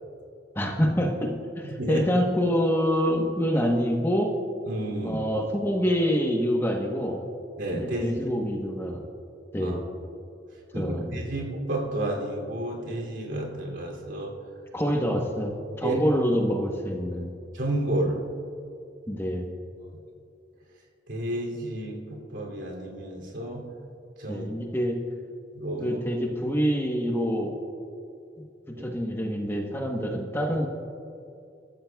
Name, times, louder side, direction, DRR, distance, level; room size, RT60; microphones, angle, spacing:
voice 1, 0.5-1.3 1.6-4.3 5.0-7.2 7.7-9.0 9.5-9.8 10.7-11.2 14.7-17.3 19.1-19.5 24.3-25.0 25.8-27.5 28.8-30.7, equal, 15° left, 1 dB, 1.1 m, -26 dB
voice 2, 1.8-2.1 4.7-5.2 7.6-8.0 9.6-9.8 10.7-14.3 15.8-16.0 17.5-18.2 21.1-22.0 22.3-23.6 24.2-24.5 25.5-26.0 28.8-28.9, right 1 dB, 85° right, -1 dB, 2.8 m, -31 dB
23.5 x 13.5 x 2.3 m, 2.5 s
head